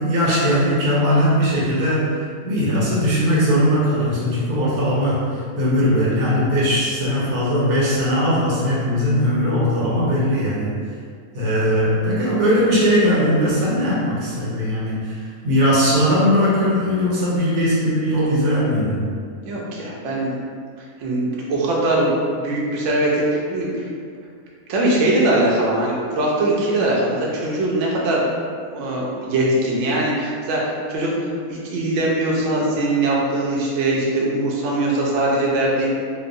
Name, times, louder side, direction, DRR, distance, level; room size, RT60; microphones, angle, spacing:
voice 1, 0.0-10.7 11.3-19.0, equal, 90° right, -7 dB, 1.3 m, -19 dB
voice 2, 19.4-20.4 20.8-23.9 24.7-28.3 28.7-35.9, right 1 dB, 65° right, -4 dB, 0.8 m, -21 dB
2.9 x 2.0 x 2.5 m, 2.1 s
omnidirectional pair, 1.6 m